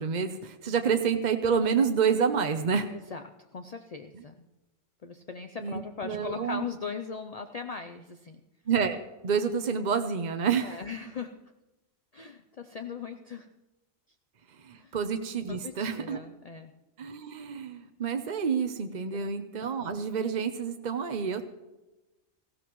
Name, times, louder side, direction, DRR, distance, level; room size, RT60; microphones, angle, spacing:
voice 1, 0.0-2.9 5.6-5.7 6.0-6.7 8.7-9.0 9.2-10.8 14.6-16.2 17.0-21.5, right 6 dB, 40° right, 7 dB, 0.7 m, -28 dB
voice 2, 2.9-4.5 5.0-8.4 10.6-11.4 12.1-13.5 14.7-14.9 15.5-16.7 19.1-19.3, left 5 dB, 55° left, 6 dB, 0.4 m, -39 dB
18.0 x 15.0 x 3.1 m, 1.1 s
omnidirectional pair, 1.4 m